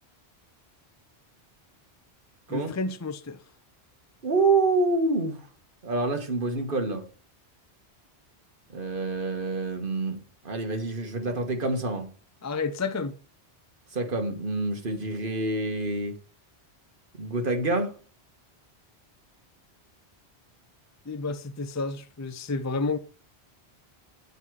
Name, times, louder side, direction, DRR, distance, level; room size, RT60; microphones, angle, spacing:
voice 1, 2.5-3.4 12.4-13.1 21.1-23.0, left 3 dB, 20° left, 0.6 m, -30 dB
voice 2, 4.2-5.4 5.8-7.0 8.7-12.1 13.9-16.2 17.2-17.9, right 3 dB, 55° right, 1.6 m, -27 dB
9.3 x 5.6 x 4.7 m
omnidirectional pair, 1.1 m